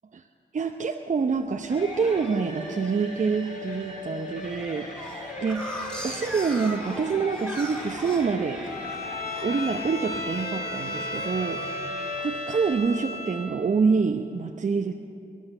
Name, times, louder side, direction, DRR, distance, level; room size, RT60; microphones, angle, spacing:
voice 1, 0.5-8.6 9.4-11.6 12.2-14.9, right 5 dB, 45° right, 3 dB, 0.8 m, -26 dB
sound 1, 1.3-2.1 2.6-3.0 3.4-3.5 3.8-3.9 4.2-9.0 9.3-9.7 10.1-10.4 10.7-11.7 12.1-12.6, equal, 5° left, 2.9 m, -40 dB
sound 2, 1.7-12.7, left 2 dB, 45° left, 5.1 m, -38 dB
Bowed string instrument, 8.7-13.5, left 2 dB, 65° left, 2.2 m, -34 dB
20.5 x 10.5 x 6.6 m, 2.5 s
supercardioid pair, 40°, 17 cm